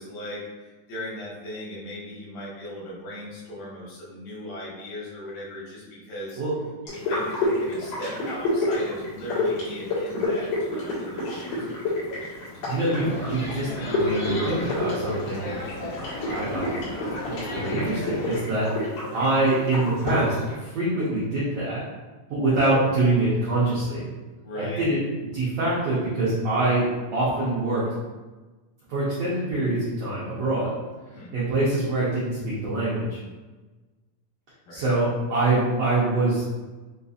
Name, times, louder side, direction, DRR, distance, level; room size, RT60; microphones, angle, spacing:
voice 1, 0.0-6.4 6.9-12.0 24.4-24.8 31.1-31.3 34.7-34.9, left 1 dB, 85° left, -7 dB, 3.4 m, -38 dB
sound 1, 6.9-20.5, left 2 dB, 70° left, 3.1 m, -29 dB
voice 2, 12.6-15.5 16.2-16.7 16.9-18.7 19.1-21.8 22.3-24.1 24.6-25.0 25.3-27.9 28.9-30.7 31.3-33.2 34.7-36.4, right 2 dB, 75° right, -9 dB, 1.4 m, -25 dB
sound 2, 13.0-18.4, equal, 50° left, 2.4 m, -34 dB
6.8 x 2.7 x 2.4 m, 1.2 s
omnidirectional pair, 4.1 m